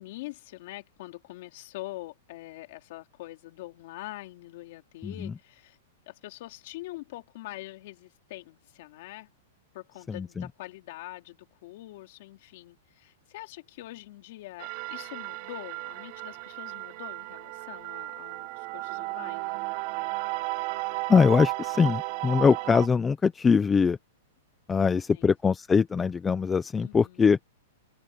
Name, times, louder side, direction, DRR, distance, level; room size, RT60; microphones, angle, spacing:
voice 1, 0.0-5.8 6.1-9.3 9.7-19.6 24.7-24.9 25.1-25.3 26.8-27.3, left 17 dB, 45° left, 3.2 m, -44 dB
voice 2, 5.0-5.3 10.1-10.4 21.1-24.0 24.7-27.4, left 5 dB, 10° left, 0.5 m, -22 dB
sound 1, 14.6-22.9, right 21 dB, 35° right, 1.1 m, -34 dB
open air
supercardioid pair, 175°, 0 cm